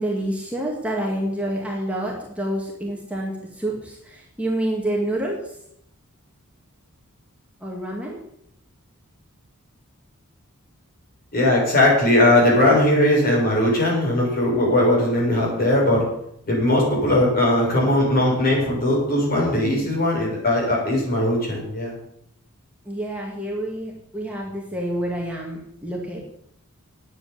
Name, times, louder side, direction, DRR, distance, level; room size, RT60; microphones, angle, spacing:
voice 1, 0.0-5.4 7.6-8.2 22.9-26.2, right 1 dB, 5° right, -2 dB, 2.1 m, -28 dB
voice 2, 11.3-16.0 16.5-21.9, left 1 dB, 45° left, -2 dB, 6.6 m, -19 dB
9.9 x 8.8 x 8.8 m, 0.74 s
head